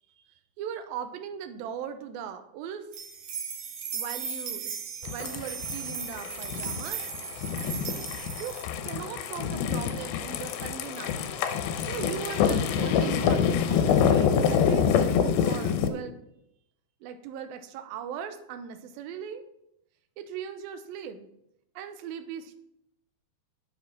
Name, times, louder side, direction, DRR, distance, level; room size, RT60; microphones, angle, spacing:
voice 1, 0.6-2.9 3.9-7.1 8.4-8.5 8.8-11.2 11.8-14.8 15.4-16.2 17.0-19.4 20.2-21.3 21.8-22.5, right 8 dB, 80° right, 9 dB, 2.6 m, -38 dB
sound 1, 2.9-8.6, right 7 dB, 60° right, 2.5 m, -37 dB
sound 2, 5.0-15.9, left 7 dB, 85° left, 2.7 m, -26 dB
8.8 x 7.2 x 5.9 m, 0.78 s
omnidirectional pair, 4.3 m